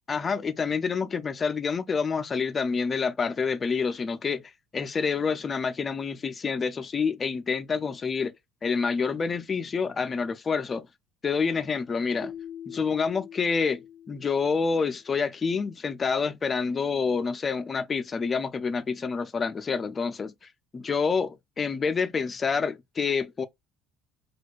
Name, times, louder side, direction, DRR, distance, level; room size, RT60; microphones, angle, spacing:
voice 1, 0.1-4.4 4.7-8.3 8.6-10.9 11.2-12.3 12.7-20.3 20.7-23.5, left 5 dB, 20° left, 0.3 m, -28 dB
Keyboard (musical), 12.2-15.0, left 8 dB, 5° right, 0.8 m, -44 dB
4.5 x 2.2 x 2.3 m
cardioid pair, 160°, 0 cm